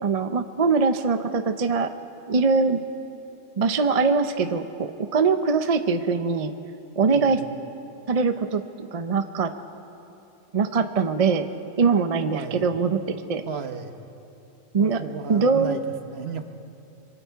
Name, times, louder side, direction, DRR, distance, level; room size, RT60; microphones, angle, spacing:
voice 1, 0.0-1.9 2.3-2.8 3.6-6.5 7.0-7.4 8.1-9.5 10.5-11.5 11.8-13.4 14.7-15.0 15.3-15.8, right 4 dB, 40° right, 8 dB, 0.6 m, -22 dB
voice 2, 7.1-7.5 12.3-12.7 13.5-14.0 14.8-16.4, right 6 dB, 55° right, 7 dB, 1.2 m, -34 dB
25.5 x 23.5 x 4.6 m, 2.8 s
omnidirectional pair, 1.4 m